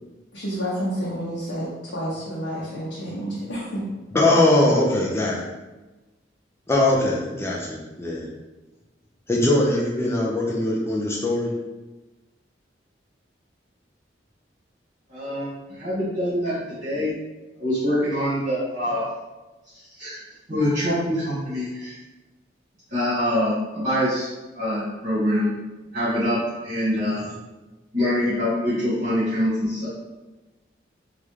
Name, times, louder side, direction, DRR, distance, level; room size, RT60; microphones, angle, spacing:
voice 1, 0.3-3.8, equal, 70° left, -7 dB, 0.7 m, -29 dB
voice 2, 4.1-5.4 6.7-8.3 9.3-11.5, left 1 dB, 15° left, -4 dB, 0.4 m, -21 dB
voice 3, 15.1-17.2 17.6-19.0 20.0-20.2 20.5-21.9 22.9-24.3 24.5-25.5 25.9-27.2 27.9-29.9, equal, 45° right, -13 dB, 1.4 m, -24 dB
3.2 x 2.4 x 3.1 m, 1.1 s
head